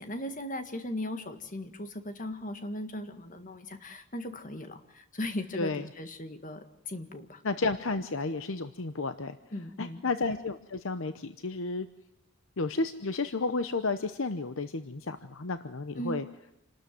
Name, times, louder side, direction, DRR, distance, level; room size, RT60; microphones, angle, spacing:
voice 1, 0.0-7.4 9.5-10.0 16.0-16.3, left 1 dB, 35° left, 8 dB, 1.8 m, -38 dB
voice 2, 5.6-5.9 7.4-9.4 9.8-11.9 12.6-16.2, left 3 dB, 60° left, 10 dB, 0.9 m, -32 dB
27.5 x 13.0 x 9.3 m, 0.85 s
head